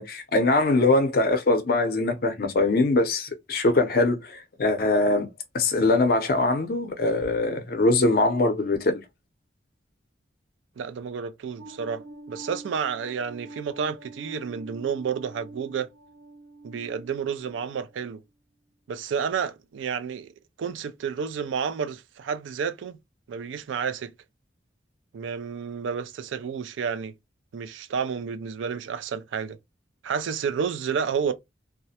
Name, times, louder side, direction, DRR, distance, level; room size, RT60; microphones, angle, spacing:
voice 1, 0.0-5.3 5.5-9.0, left 2 dB, 50° left, 0.5 m, -22 dB
voice 2, 10.8-15.9 16.6-18.2 18.9-20.3 20.6-23.0 23.3-24.1 25.1-27.1 27.5-29.6 30.0-31.3, right 6 dB, 90° right, 0.4 m, -30 dB
sound 1, 11.6-18.1, right 2 dB, 60° right, 0.8 m, -45 dB
2.3 x 2.1 x 2.7 m
head